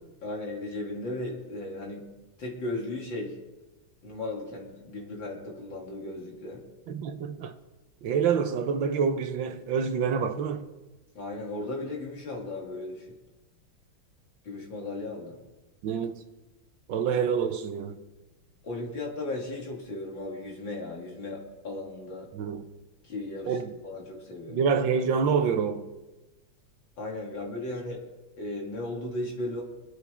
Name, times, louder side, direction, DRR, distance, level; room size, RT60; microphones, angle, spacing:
voice 1, 0.2-2.1 2.4-3.4 4.0-6.7 11.1-13.1 14.4-15.3 18.6-22.3 23.0-24.6 27.0-28.0 28.4-29.6, left 2 dB, 70° left, 3.3 m, -36 dB
voice 2, 6.9-7.6 8.0-10.7 15.8-16.1 16.9-18.0 22.3-22.6 23.5-23.7 24.5-25.9, right 6 dB, 75° right, 1.6 m, -27 dB
26.5 x 8.8 x 3.5 m
omnidirectional pair, 2.2 m